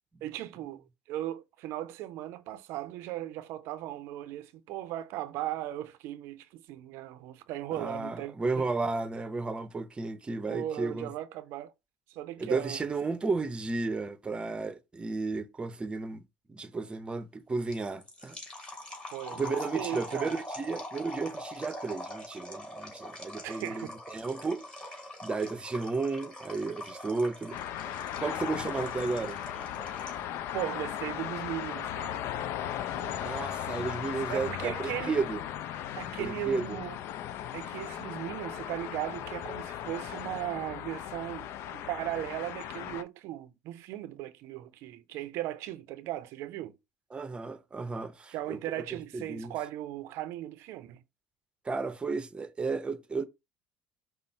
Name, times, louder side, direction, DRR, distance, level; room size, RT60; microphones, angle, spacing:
voice 1, 0.2-8.6 10.5-11.7 12.1-12.9 19.1-20.4 23.4-23.9 30.5-32.2 32.9-33.4 34.3-35.2 35.9-37.0 37.5-46.7 48.3-51.0, right 14 dB, 65° right, 0.5 m, -37 dB
voice 2, 7.7-11.1 12.4-16.2 16.5-18.4 19.3-24.6 25.2-27.6 28.2-29.4 33.2-35.4 36.1-36.8 47.1-48.6 48.9-49.5 51.6-53.3, right 4 dB, 20° right, 0.7 m, -33 dB
sound 1, 17.7-30.3, left 1 dB, 20° left, 2.3 m, -43 dB
sound 2, 27.5-43.0, left 11 dB, 60° left, 0.4 m, -37 dB
5.3 x 2.0 x 4.3 m
hypercardioid pair, 80°, 5 cm